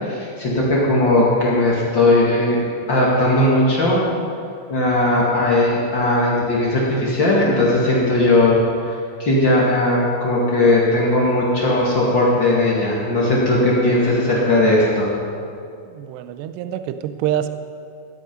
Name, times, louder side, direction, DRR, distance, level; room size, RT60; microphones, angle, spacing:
voice 1, 0.0-2.6 2.9-4.0 4.7-8.6 8.9-15.1, left 1 dB, 85° left, -5 dB, 1.0 m, -18 dB
voice 2, 15.9-17.5, right 11 dB, 85° right, 10 dB, 2.4 m, -25 dB
17.0 x 14.0 x 5.3 m, 2.4 s
omnidirectional pair, 5.8 m